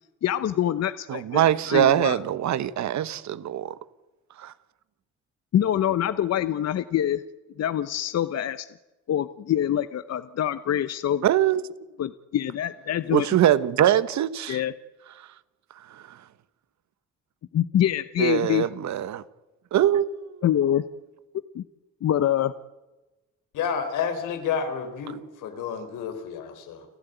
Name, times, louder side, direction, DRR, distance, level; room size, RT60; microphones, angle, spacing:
voice 1, 0.2-2.2 5.5-7.2 7.6-8.7 9.1-11.2 12.0-13.3 14.5-14.7 17.5-18.7 20.4-20.8 21.5-21.6 22.0-22.5, left 11 dB, 55° left, 0.8 m, -25 dB
voice 2, 1.1-3.8 4.4-4.5 11.2-11.6 13.1-14.6 15.9-16.2 18.2-19.2 19.7-20.4, right 11 dB, 65° right, 1.2 m, -23 dB
voice 3, 23.5-26.9, left 6 dB, 85° left, 3.9 m, -30 dB
30.0 x 12.0 x 9.2 m
cardioid pair, 90°, 30 cm